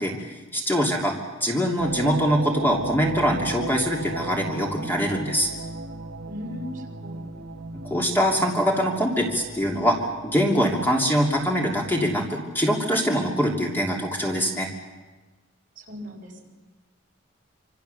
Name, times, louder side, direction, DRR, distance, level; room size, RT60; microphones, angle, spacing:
voice 1, 0.0-5.5 7.9-10.0 10.2-14.7, equal, 10° left, 0 dB, 3.0 m, -23 dB
sound 1, 1.8-12.0, right 3 dB, 85° right, 1.4 m, -36 dB
voice 2, 6.3-7.3 15.8-16.5, left 1 dB, 45° right, 0 dB, 4.7 m, -38 dB
27.0 x 26.5 x 7.0 m, 1.2 s
head